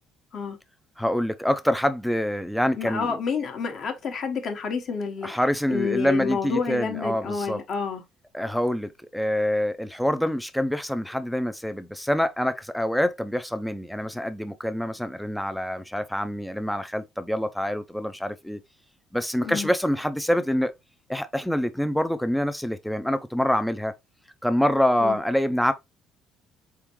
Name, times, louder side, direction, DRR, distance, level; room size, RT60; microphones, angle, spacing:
voice 1, 1.0-3.1 5.2-7.6 8.3-18.6 19.1-20.7 21.1-23.9 24.4-25.7, equal, ahead, 0.4 m, -26 dB
voice 2, 2.8-5.3 5.7-8.0 19.4-19.7 25.0-25.2, left 5 dB, 45° left, 1.0 m, -29 dB
4.4 x 3.6 x 3.0 m
cardioid pair, 145°, 0 cm